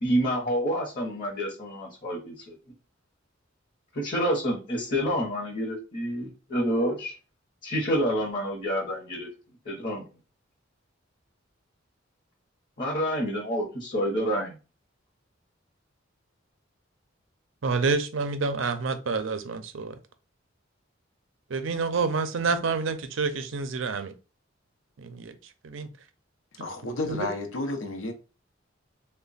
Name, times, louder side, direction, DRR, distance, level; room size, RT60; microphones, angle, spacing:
voice 1, 0.0-2.6 3.9-7.2 7.6-9.3 9.7-10.0 12.8-14.6, equal, 40° left, 0.9 m, -28 dB
voice 2, 17.6-20.0 21.5-24.1 25.0-25.3 25.6-25.9 27.1-27.3, right 4 dB, 70° right, 0.5 m, -28 dB
voice 3, 26.6-28.1, left 2 dB, 75° left, 0.7 m, -31 dB
3.2 x 2.2 x 3.9 m
head